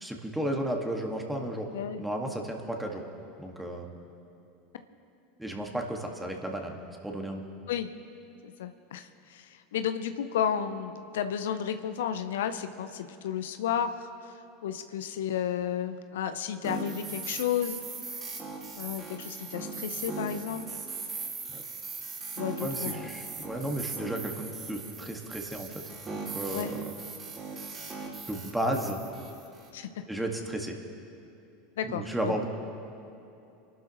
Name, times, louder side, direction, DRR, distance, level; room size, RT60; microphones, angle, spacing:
voice 1, 0.0-1.7 2.0-3.0 3.4-3.9 5.4-7.4 21.5-21.6 22.6-26.8 28.3-29.0 30.1-30.8 31.8-32.5, right 1 dB, 5° right, 1 dB, 1.8 m, -33 dB
voice 2, 8.4-14.1 14.6-17.8 18.7-20.8 22.4-23.1 26.5-26.7 29.7-29.9 31.8-32.4, left 9 dB, 70° left, 9 dB, 0.6 m, -32 dB
sound 1, 16.6-29.7, right 4 dB, 30° right, 3.8 m, -39 dB
26.5 x 12.0 x 3.1 m, 2.8 s
hypercardioid pair, 85°, 0 cm